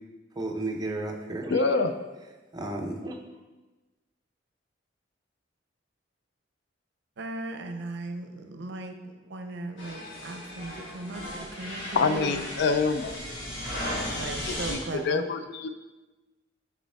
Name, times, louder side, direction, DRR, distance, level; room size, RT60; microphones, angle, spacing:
voice 1, 0.4-1.9 2.5-3.2, right 2 dB, 20° right, 1 dB, 0.6 m, -33 dB
voice 2, 1.5-1.9 11.9-13.2 13.8-14.2 14.5-15.7, left 4 dB, 60° left, 9 dB, 0.4 m, -26 dB
voice 3, 7.2-12.4 14.1-15.2, right 2 dB, 65° right, 6 dB, 0.6 m, -37 dB
sound 1, 9.8-14.8, left 1 dB, 80° left, 1.5 m, -36 dB
6.5 x 4.3 x 3.4 m, 1.2 s
head